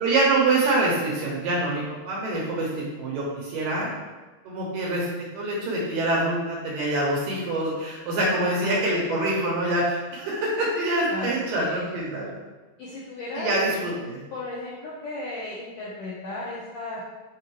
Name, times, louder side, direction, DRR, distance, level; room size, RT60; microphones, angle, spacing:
voice 1, 0.0-3.9 4.4-12.3 13.3-14.2, right 2 dB, 70° right, -4 dB, 2.4 m, -25 dB
voice 2, 8.4-9.2 11.1-12.0 12.8-13.6 14.3-17.0, left 2 dB, 80° left, -6 dB, 1.9 m, -35 dB
7.7 x 4.3 x 3.1 m, 1.2 s
omnidirectional pair, 4.8 m